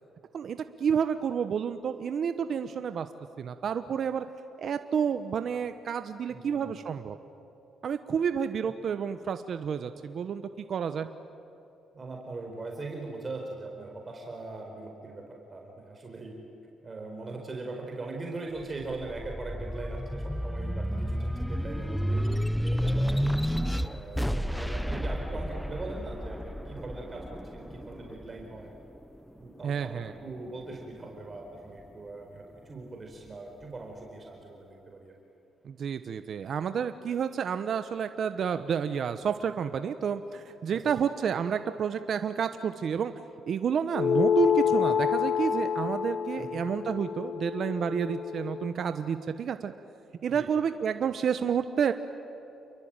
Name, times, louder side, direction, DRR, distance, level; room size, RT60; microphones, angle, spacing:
voice 1, 0.3-3.1 3.4-4.2 4.6-7.2 7.8-11.1 29.6-30.1 35.6-43.1 43.5-49.7 50.2-51.9, right 7 dB, 60° right, 9 dB, 1.0 m, -30 dB
voice 2, 6.3-6.8 11.9-16.4 16.8-22.3 22.7-23.3 23.8-28.8 29.4-35.1 40.7-40.9 46.4-46.6 50.3-50.5, right 3 dB, 30° right, 1 dB, 4.6 m, -41 dB
sound 1, 18.6-29.4 29.9-31.0, equal, ahead, 1.1 m, -31 dB
sound 2, 43.9-48.7, left 8 dB, 50° left, 0.7 m, -28 dB
29.0 x 23.0 x 9.0 m, 2.9 s
cardioid pair, 90°, 0 cm